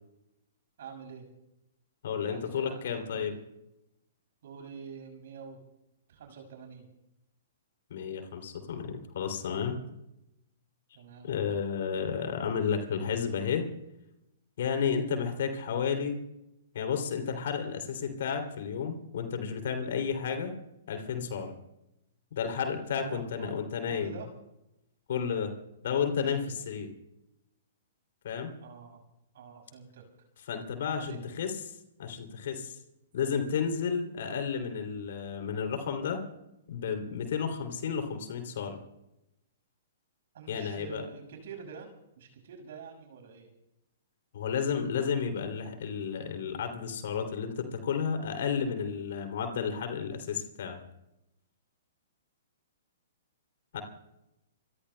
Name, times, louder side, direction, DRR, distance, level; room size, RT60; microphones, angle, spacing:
voice 1, 0.8-1.3 2.2-3.2 4.4-5.6 6.1-6.9 10.9-11.3 23.0-23.5 23.9-24.3 28.6-29.0 29.3-30.0 30.9-31.2 40.3-41.9 42.2-43.5, right 6 dB, 55° right, 4 dB, 5.8 m, -46 dB
voice 2, 2.0-3.4 7.9-9.8 11.2-13.6 14.6-16.2 16.7-20.6 20.9-21.6 22.3-24.1 25.1-25.5 25.8-26.9 28.2-28.5 30.5-31.7 32.0-32.8 33.1-36.2 36.7-38.8 40.5-41.0 44.3-50.8 53.7-53.8, left 6 dB, 55° left, 5 dB, 2.8 m, -32 dB
26.5 x 23.5 x 2.2 m, 0.86 s
figure-of-eight pair, 115°, 0 cm